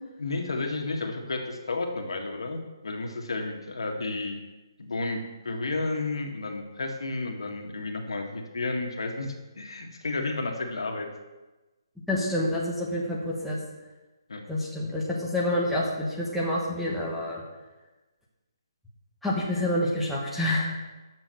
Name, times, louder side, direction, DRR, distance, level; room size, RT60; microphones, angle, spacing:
voice 1, 0.2-4.4 4.8-11.1 14.3-14.4, left 3 dB, 85° left, 2 dB, 1.9 m, -32 dB
voice 2, 12.1-13.6 14.5-17.4 19.2-20.7, left 1 dB, ahead, -7 dB, 1.2 m, -28 dB
7.0 x 6.3 x 7.7 m, 1.1 s
hypercardioid pair, 170°, 3 cm